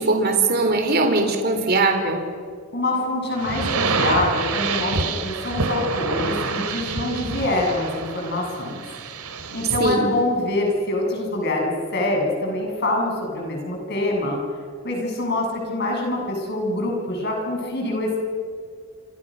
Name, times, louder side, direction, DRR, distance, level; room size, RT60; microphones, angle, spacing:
voice 1, 0.0-2.2 9.8-10.1, right 3 dB, 45° right, 4 dB, 3.5 m, -20 dB
voice 2, 2.7-8.8 9.5-14.4 14.8-18.2, left 2 dB, 50° left, 0 dB, 7.4 m, -25 dB
sound 1, 3.4-10.0, right 4 dB, 90° right, 2.6 m, -27 dB
28.0 x 27.5 x 6.5 m, 2.1 s
head